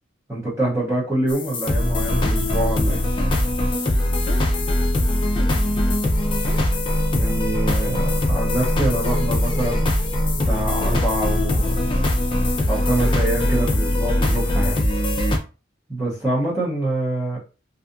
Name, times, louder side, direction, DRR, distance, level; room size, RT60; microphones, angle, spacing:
voice 1, 0.3-3.0 7.1-9.8 10.4-11.9 12.7-14.9 15.9-17.4, right 1 dB, 15° right, -7 dB, 0.8 m, -25 dB
sound 1, 1.3-15.4, left 1 dB, 25° left, 0.4 m, -21 dB
2.6 x 2.4 x 2.5 m, 0.34 s
head